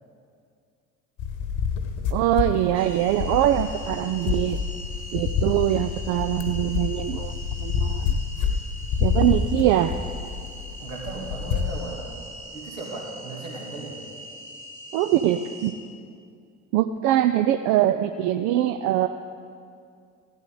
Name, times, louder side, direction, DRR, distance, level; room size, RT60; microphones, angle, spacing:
sound 1, 1.2-11.9, left 6 dB, 50° left, 1.2 m, -28 dB
voice 1, 2.1-4.6 5.1-8.2 9.0-9.9 14.9-15.8 16.7-19.1, right 12 dB, 45° right, 8 dB, 0.5 m, -23 dB
sound 2, 2.7-15.7, equal, 90° right, 1.3 m, -42 dB
voice 2, 10.8-12.1 12.5-14.0, right 2 dB, 70° right, -2 dB, 2.2 m, -36 dB
15.0 x 12.0 x 3.8 m, 2.3 s
figure-of-eight pair, 60°, 40 cm